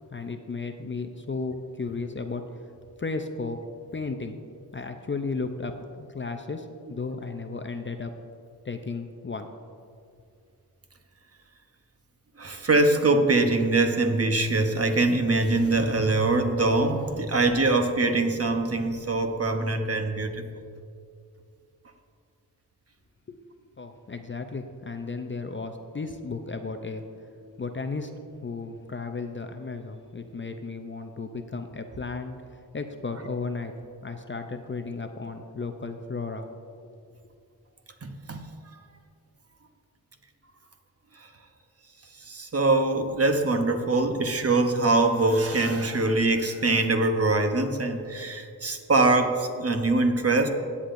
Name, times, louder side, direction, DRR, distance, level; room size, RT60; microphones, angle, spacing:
voice 1, 0.1-2.4 3.0-3.6 3.9-4.4 4.7-8.1 8.6-9.5 23.3-23.4 23.8-27.0 27.6-28.2 28.4-33.7 34.0-36.5, left 4 dB, 30° left, 6 dB, 0.5 m, -34 dB
voice 2, 12.4-20.5 38.0-38.5 42.3-50.5, right 2 dB, 35° right, 6 dB, 0.9 m, -23 dB
15.5 x 8.5 x 2.6 m, 2.3 s
wide cardioid pair, 90°, 40 cm